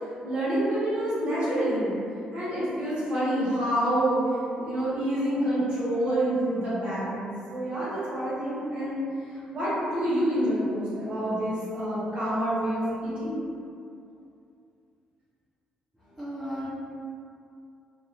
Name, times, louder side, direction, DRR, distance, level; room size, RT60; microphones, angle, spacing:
voice 1, 0.2-1.9 2.3-4.2 4.5-9.0 9.5-13.3, right 1 dB, 50° right, -10 dB, 1.3 m, -27 dB
voice 2, 16.0-16.7, equal, ahead, -13 dB, 0.6 m, -36 dB
2.5 x 2.4 x 2.9 m, 2.5 s
cardioid pair, 135°, 3 cm